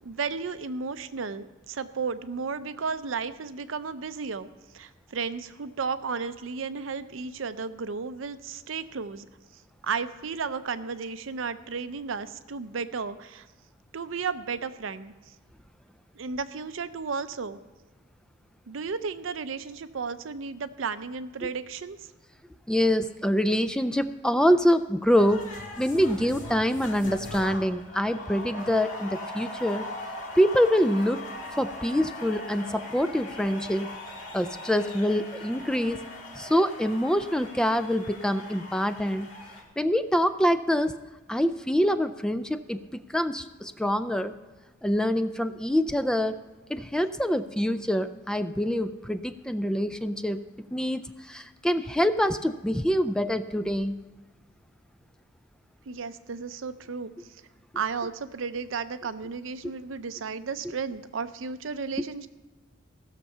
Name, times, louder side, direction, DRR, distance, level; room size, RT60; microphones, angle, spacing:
voice 1, 0.0-4.5 4.7-9.3 9.8-13.5 13.9-15.1 16.1-17.6 18.7-22.1 55.9-57.1 57.7-62.3, right 5 dB, 70° right, 12 dB, 0.6 m, -33 dB
voice 2, 22.7-25.5 25.8-29.9 30.4-31.2 31.6-33.9 34.3-36.0 36.4-39.3 39.8-40.9 41.3-44.3 44.8-46.4 46.7-50.4 50.7-54.0, equal, 5° left, 11 dB, 0.3 m, -25 dB
sound 1, 25.2-39.6, left 1 dB, 70° left, 2.0 m, -40 dB
16.0 x 6.8 x 5.5 m, 1.2 s
head